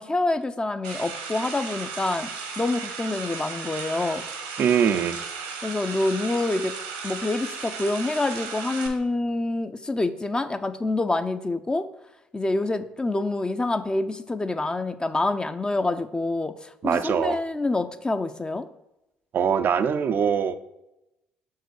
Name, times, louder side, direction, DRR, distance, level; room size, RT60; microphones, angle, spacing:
voice 1, 0.0-2.3 2.6-4.2 5.6-6.7 7.0-11.9 12.3-18.7, left 2 dB, 20° left, 0.5 m, -26 dB
sound 1, 0.8-8.9, right 5 dB, 80° right, 1.0 m, -35 dB
voice 2, 4.6-5.2 16.8-17.4 19.3-20.6, right 7 dB, 50° right, 0.4 m, -22 dB
6.2 x 4.7 x 4.6 m
hypercardioid pair, 50°, 4 cm